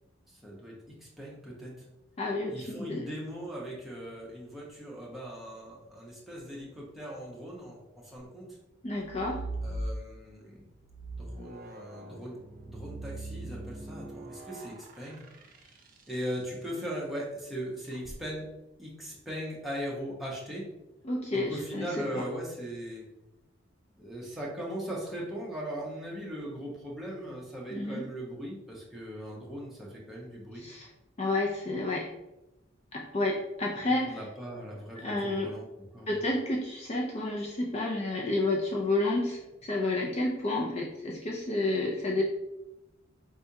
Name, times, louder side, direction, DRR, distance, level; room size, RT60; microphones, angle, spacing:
voice 1, 0.3-1.8 2.5-8.5 9.6-10.7 11.2-12.4 12.6-15.2 16.1-18.5 18.8-20.7 21.3-23.0 24.0-30.7 33.9-35.6 35.9-36.2, equal, ahead, -5 dB, 0.9 m, -39 dB
voice 2, 2.2-3.1 8.8-9.4 21.0-21.9 22.2-22.3 27.7-28.1 30.5-30.9 31.2-32.1 32.9-34.2 35.0-35.5 36.1-42.2, left 2 dB, 30° left, -2 dB, 0.4 m, -30 dB
sound 1, 8.9-10.3 10.8-16.3 17.8-18.2, right 2 dB, 45° right, 0.5 m, -40 dB
4.6 x 3.3 x 2.7 m, 0.94 s
head